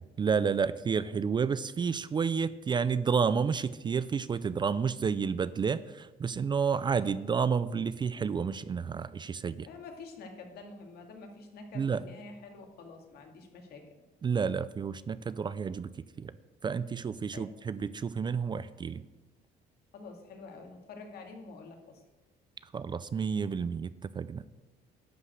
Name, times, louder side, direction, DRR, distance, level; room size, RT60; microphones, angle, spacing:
voice 1, 0.2-9.7 11.7-12.0 14.2-15.9 16.2-16.3 16.6-19.0 22.7-23.9 24.2-24.4, right 6 dB, 25° right, 16 dB, 0.4 m, -30 dB
voice 2, 9.7-13.8 17.3-17.5 19.9-22.0, left 3 dB, 70° left, 3 dB, 2.1 m, -47 dB
11.0 x 5.1 x 7.9 m, 1.1 s
cardioid pair, 110°, 17 cm